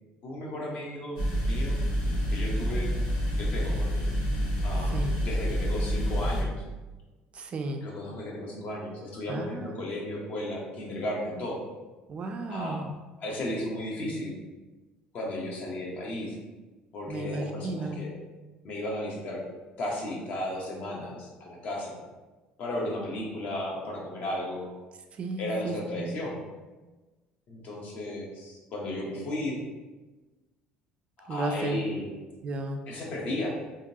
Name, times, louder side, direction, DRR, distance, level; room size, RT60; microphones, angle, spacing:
voice 1, 0.2-1.8 2.3-2.9 3.4-4.0 4.6-6.6 7.8-11.6 12.5-12.8 13.2-14.3 15.1-16.4 16.9-18.1 18.6-19.4 19.8-22.0 22.6-24.7 25.4-26.4 27.5-29.6 31.2-32.1 32.9-33.5, left 1 dB, 50° left, -2 dB, 1.0 m, -34 dB
sound 1, 1.2-6.4, equal, 90° left, 1.0 m, -28 dB
voice 2, 7.3-7.8 9.3-9.8 12.1-12.9 17.1-18.0 25.2-26.2 31.3-31.8 32.4-32.8, right 2 dB, 40° right, 5 dB, 0.4 m, -34 dB
3.6 x 2.6 x 2.7 m, 1.2 s
cardioid pair, 110°, 3 cm